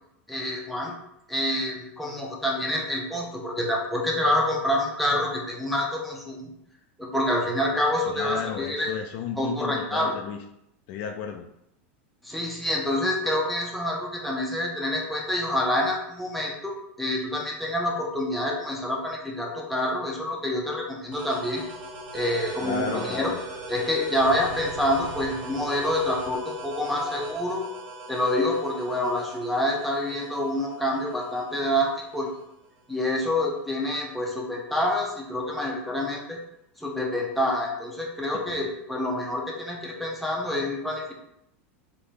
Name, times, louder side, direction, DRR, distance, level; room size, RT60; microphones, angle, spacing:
voice 1, 0.3-0.9 1.3-6.5 7.0-8.9 9.4-10.1 12.2-21.6 22.1-23.3 23.7-27.6 28.1-32.3 32.9-36.4 36.8-41.1, left 1 dB, ahead, -2 dB, 0.7 m, -27 dB
voice 2, 8.1-10.4 10.9-11.5 22.6-23.4 38.5-38.6, left 7 dB, 55° left, 4 dB, 0.4 m, -33 dB
sound 1, 21.1-32.5, right 2 dB, 30° right, 1.4 m, -39 dB
3.9 x 2.9 x 3.3 m, 0.79 s
supercardioid pair, 140°, 7 cm